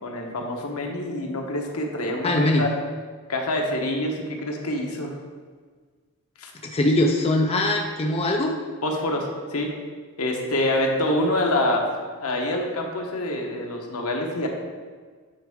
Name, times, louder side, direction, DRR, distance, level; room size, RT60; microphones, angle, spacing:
voice 1, 0.0-2.3 2.6-2.7 3.3-5.1 6.4-6.5 8.8-9.7 10.2-11.9 12.2-14.5, left 1 dB, 75° left, 1 dB, 1.1 m, -26 dB
voice 2, 2.2-2.6 6.6-8.5, left 1 dB, 25° left, 1 dB, 0.5 m, -21 dB
8.8 x 4.7 x 3.6 m, 1.5 s
head